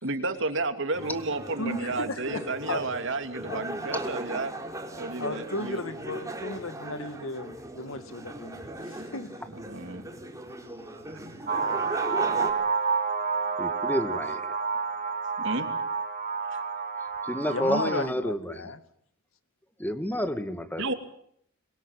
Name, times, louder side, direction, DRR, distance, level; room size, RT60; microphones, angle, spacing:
voice 1, 0.0-4.5 5.0-5.8 9.7-10.1 15.4-15.7 16.5-16.6 20.8-20.9, right 3 dB, 65° right, 7 dB, 3.1 m, -32 dB
sound 1, 0.9-12.5, right 1 dB, 15° right, 4.3 m, -38 dB
voice 2, 1.6-2.9 3.5-3.7 5.2-9.3 17.5-18.8, left 2 dB, 75° left, 10 dB, 2.3 m, -35 dB
sound 2, 11.5-18.1, right 5 dB, 40° right, 3.0 m, -29 dB
voice 3, 13.6-14.4 17.3-18.6 19.8-20.8, equal, 10° left, 9 dB, 2.2 m, -29 dB
26.0 x 23.0 x 9.1 m, 0.70 s
head